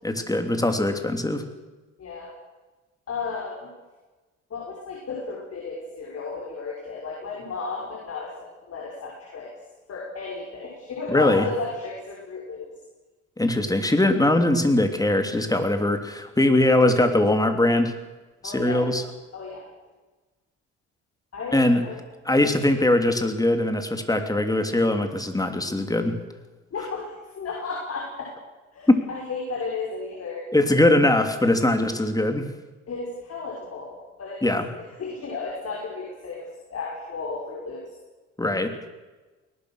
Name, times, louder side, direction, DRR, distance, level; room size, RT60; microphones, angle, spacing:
voice 1, 0.0-1.4 11.1-11.4 13.4-17.9 18.4-19.0 21.5-21.8 22.2-26.2 28.9-29.0 30.5-32.5 34.4-34.7 38.4-38.7, left 1 dB, 10° left, 6 dB, 3.2 m, -21 dB
voice 2, 2.0-2.3 3.1-3.7 4.5-8.3 8.6-9.5 9.9-12.7 18.4-18.8 19.3-19.7 21.3-22.0 26.7-28.3 28.7-30.8 31.7-31.8 32.9-34.4 34.8-37.8, left 4 dB, 55° left, -2 dB, 6.2 m, -34 dB
21.5 x 19.5 x 6.5 m, 1.2 s
cardioid pair, 90°, 30 cm